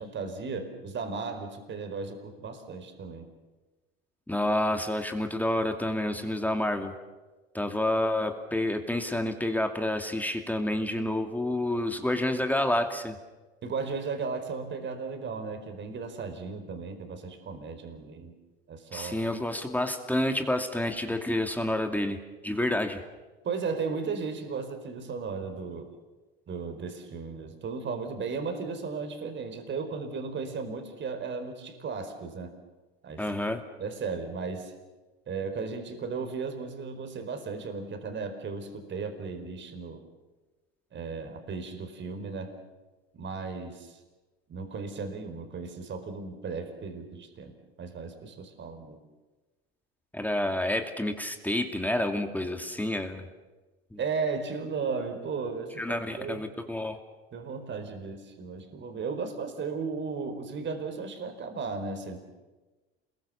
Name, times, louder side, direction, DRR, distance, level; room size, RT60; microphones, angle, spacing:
voice 1, 0.0-3.3 13.6-18.3 18.7-19.2 23.4-25.9 26.5-32.5 33.0-33.2 33.8-34.7 35.3-40.0 40.9-42.5 43.1-44.0 44.5-49.0 54.0-56.5 57.3-62.2, right 4 dB, 40° right, 7 dB, 4.8 m, -35 dB
voice 2, 4.3-6.9 7.5-13.1 18.9-22.2 22.4-23.0 33.2-33.6 50.1-53.3 53.9-54.0 55.8-57.0, left 1 dB, 5° left, 5 dB, 2.5 m, -29 dB
28.0 x 22.0 x 7.1 m, 1.2 s
hypercardioid pair, 80°, 30 cm